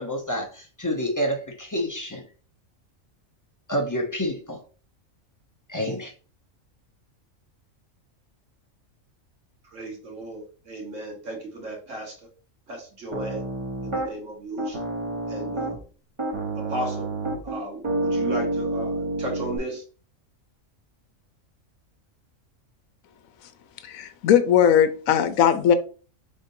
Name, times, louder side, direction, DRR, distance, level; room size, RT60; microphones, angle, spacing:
voice 1, 0.0-2.2 3.7-4.6 5.7-6.1, equal, 20° left, 0.5 m, -28 dB
voice 2, 9.7-12.1 12.7-13.4 13.8-14.8 15.3-15.7 16.6-17.1 17.4-19.8, right 1 dB, 65° right, 1.7 m, -35 dB
Piano, 13.1-14.1 14.6-15.8 16.2-19.6, right 2 dB, 25° right, 0.9 m, -29 dB
voice 3, 23.8-25.7, left 9 dB, 90° left, 1.0 m, -19 dB
5.2 x 3.6 x 2.7 m
omnidirectional pair, 1.4 m